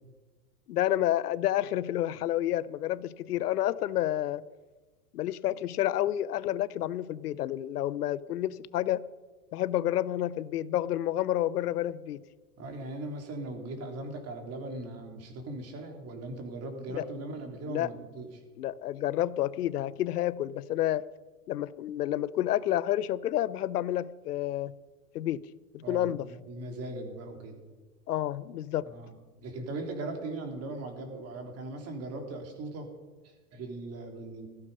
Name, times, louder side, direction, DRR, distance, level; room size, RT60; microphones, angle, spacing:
voice 1, 0.7-4.4 5.1-9.0 9.5-12.2 17.7-17.9 18.6-21.0 21.5-24.7 25.1-25.4 25.7-26.3 28.1-28.8, left 13 dB, 85° left, 19 dB, 0.7 m, -29 dB
voice 2, 12.6-18.4 25.8-27.6 28.8-32.9 33.2-34.5, right 2 dB, 35° right, 4 dB, 3.3 m, -39 dB
15.5 x 13.5 x 5.4 m, 1.2 s
hypercardioid pair, 130°, 45 cm